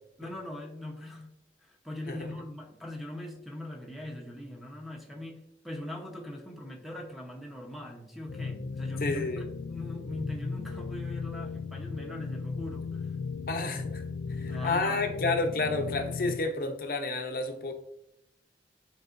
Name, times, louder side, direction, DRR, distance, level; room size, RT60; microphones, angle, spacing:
voice 1, 0.2-13.1 13.7-13.9 14.5-15.0, left 1 dB, ahead, 1 dB, 0.9 m, -41 dB
sound 1, 8.3-16.4, left 4 dB, 80° left, 0.4 m, -36 dB
voice 2, 9.0-9.4 13.5-13.9 14.4-17.7, left 3 dB, 55° left, 5 dB, 0.7 m, -30 dB
10.5 x 4.7 x 2.6 m, 0.80 s
head